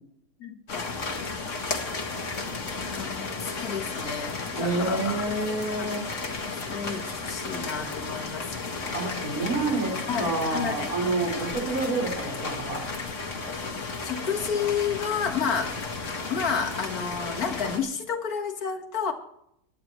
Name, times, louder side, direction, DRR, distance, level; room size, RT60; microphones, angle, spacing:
voice 1, 0.4-1.0 3.0-5.3 5.8-6.1 6.4-8.5 10.1-10.9 14.0-15.7 16.3-19.1, left 6 dB, 70° left, 5 dB, 2.0 m, -31 dB
sound 1, 0.7-17.8, left 3 dB, 50° left, 2.1 m, -33 dB
voice 2, 4.6-6.0 8.9-12.9, right 3 dB, 60° right, -1 dB, 4.9 m, -28 dB
23.5 x 10.5 x 3.1 m, 0.76 s
omnidirectional pair, 1.7 m